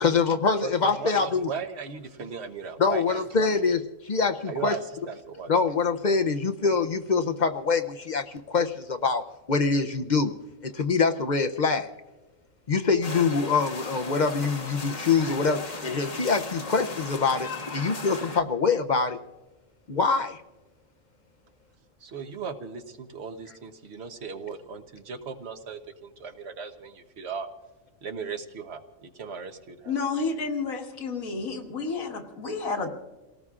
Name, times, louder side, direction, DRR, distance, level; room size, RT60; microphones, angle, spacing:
voice 1, 0.0-1.5 2.8-4.8 5.5-9.2 9.5-10.3 10.6-11.9 12.7-19.2 19.9-20.4, left 4 dB, 50° left, 6 dB, 0.5 m, -24 dB
voice 2, 0.6-3.5 4.5-4.8 5.1-5.5 22.0-27.5 28.0-29.9, right 6 dB, 55° right, 8 dB, 1.1 m, -37 dB
sound 1, 13.0-18.4, left 3 dB, 35° left, 0.9 m, -37 dB
voice 3, 29.9-32.9, left 4 dB, 85° left, 3 dB, 1.9 m, -30 dB
29.5 x 18.0 x 2.4 m, 1.2 s
omnidirectional pair, 1.4 m